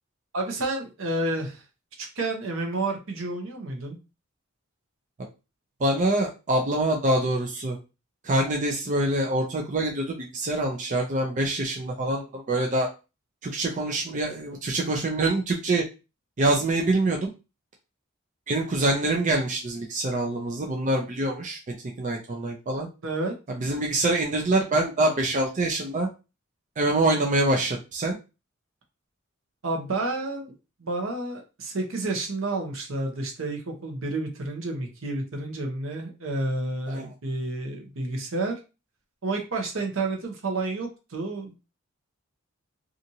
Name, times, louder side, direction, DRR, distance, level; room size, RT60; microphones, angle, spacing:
voice 1, 0.3-1.6 2.0-4.0 23.0-23.4 29.6-30.5 30.8-38.6 39.2-41.5, right 2 dB, 70° right, 2 dB, 0.8 m, -30 dB
voice 2, 5.8-7.8 8.2-12.9 13.4-15.8 16.4-17.3 18.5-22.9 23.5-26.1 26.8-28.2 36.9-37.1, right 2 dB, 35° right, 0 dB, 0.5 m, -25 dB
2.8 x 2.5 x 2.6 m, 0.29 s
head